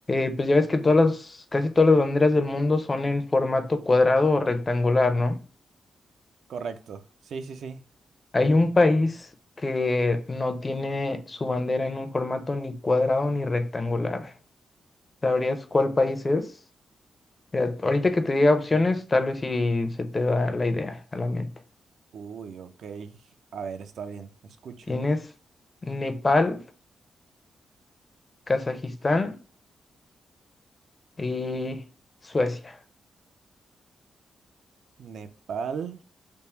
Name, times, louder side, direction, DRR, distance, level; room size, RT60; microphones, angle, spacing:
voice 1, 0.1-5.4 8.3-9.3 9.6-14.3 15.2-16.5 17.5-21.5 24.9-25.3 25.8-26.6 28.5-29.3 31.2-31.8 32.2-32.8, left 2 dB, 25° left, 0.5 m, -23 dB
voice 2, 6.5-7.8 22.1-23.2 23.5-25.0 35.0-36.0, right 6 dB, 75° right, 0.4 m, -37 dB
3.5 x 2.0 x 4.2 m
wide cardioid pair, 135°, 0 cm